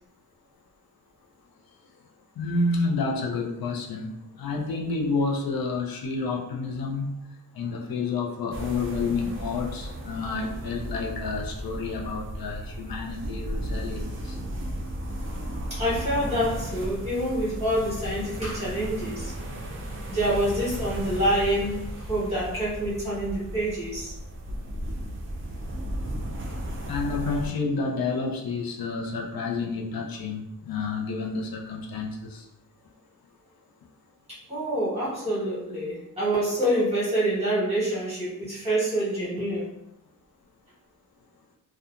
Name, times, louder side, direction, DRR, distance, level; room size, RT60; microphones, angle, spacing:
voice 1, 2.4-7.2 7.5-14.4 26.9-32.4, left 3 dB, 85° left, 0 dB, 0.5 m, -29 dB
sound 1, 8.5-27.5, equal, 35° right, 0.4 m, -35 dB
voice 2, 15.7-19.3 20.1-24.1 34.5-39.7, right 1 dB, 20° right, -8 dB, 1.3 m, -27 dB
2.7 x 2.2 x 2.4 m, 0.82 s
wide cardioid pair, 160°, 35 cm